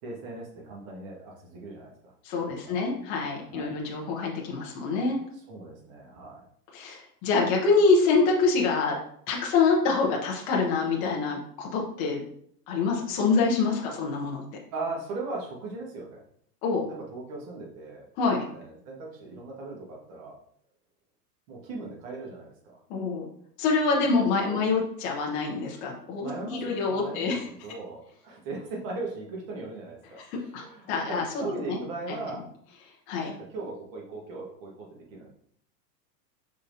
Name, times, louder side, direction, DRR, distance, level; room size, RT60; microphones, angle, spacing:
voice 1, 0.0-2.1 2.4-2.7 3.3-3.8 5.5-6.4 14.7-16.2 16.9-18.1 18.5-20.4 21.5-22.8 24.0-24.6 26.2-27.4 27.6-32.4 33.3-35.3, right 3 dB, 55° right, -2 dB, 1.6 m, -38 dB
voice 2, 2.2-5.2 6.7-8.9 9.3-12.2 12.7-14.4 16.6-16.8 18.2-18.5 22.9-23.2 23.6-27.4 30.5-31.8 32.1-32.2 33.1-33.3, left 4 dB, 20° left, -2 dB, 0.4 m, -26 dB
5.4 x 3.7 x 2.7 m, 0.66 s
supercardioid pair, 150°, 48 cm